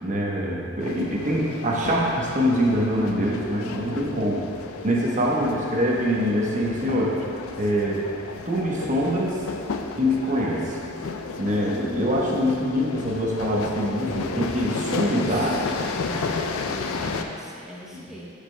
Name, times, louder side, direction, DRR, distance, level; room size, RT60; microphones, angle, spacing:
voice 1, 0.0-4.4 4.8-7.1 7.6-8.0 8.5-9.4 10.0-10.8 11.4-15.6 17.9-18.1, equal, 40° right, -3 dB, 1.0 m, -24 dB
sound 1, 0.8-17.2, left 4 dB, 85° left, 0.4 m, -33 dB
voice 2, 15.2-18.3, equal, 5° right, -7 dB, 0.8 m, -40 dB
11.5 x 5.0 x 2.2 m, 2.6 s
head